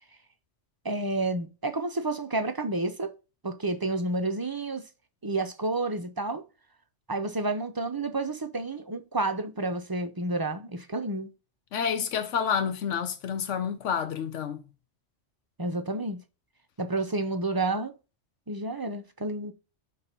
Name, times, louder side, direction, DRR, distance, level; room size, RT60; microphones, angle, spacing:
voice 1, 0.8-3.1 3.4-4.8 5.2-6.4 7.1-11.3 15.6-16.2 16.8-17.9 18.5-19.5, right 2 dB, 30° right, 0.5 m, -30 dB
voice 2, 11.7-14.7, left 7 dB, 90° left, 1.1 m, -29 dB
5.8 x 3.7 x 5.3 m
omnidirectional pair, 1.2 m